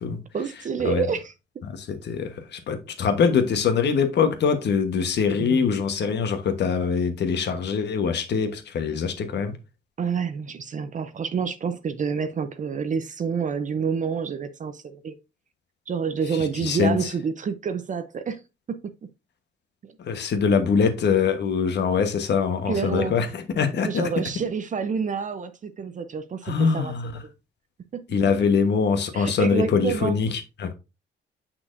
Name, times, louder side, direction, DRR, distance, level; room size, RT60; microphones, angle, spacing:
voice 1, 0.3-1.3 5.4-5.7 10.0-15.2 15.9-18.4 18.7-19.1 19.8-19.9 22.7-23.1 23.8-26.9 27.2-27.3 27.9-28.0 29.1-30.2, right 6 dB, 40° right, 0.6 m, -28 dB
voice 2, 1.7-9.5 16.3-17.1 20.0-24.1 26.4-27.1 28.1-30.7, left 6 dB, 60° left, 1.2 m, -23 dB
6.3 x 5.8 x 2.6 m
cardioid pair, 90°, 20 cm